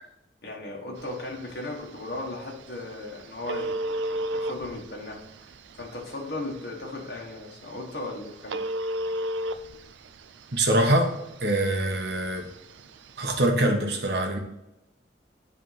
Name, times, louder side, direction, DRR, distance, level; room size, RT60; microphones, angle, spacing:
voice 1, 0.4-8.6, left 2 dB, 60° left, -2 dB, 1.3 m, -37 dB
Telephone, 1.0-13.5, right 1 dB, 90° right, 0.4 m, -36 dB
voice 2, 10.5-11.1 11.4-12.5 13.2-14.4, right 1 dB, 65° right, 3 dB, 1.1 m, -24 dB
7.8 x 3.5 x 5.6 m, 0.90 s
head